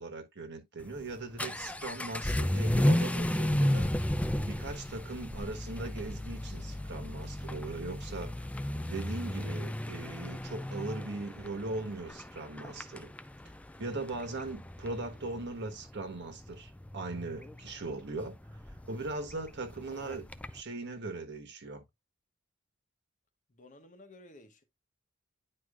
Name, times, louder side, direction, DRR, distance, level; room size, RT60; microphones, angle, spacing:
voice 1, 0.0-3.9 4.4-8.5 8.9-13.1 13.8-18.3 18.8-20.2 20.5-21.8, right 2 dB, 60° right, 1.4 m, -39 dB
Vehicle / Accelerating revving vroom, 0.8-20.6, left 1 dB, 5° left, 0.3 m, -34 dB
voice 2, 23.5-24.6, left 2 dB, 40° left, 1.0 m, -54 dB
10.0 x 4.7 x 2.4 m
head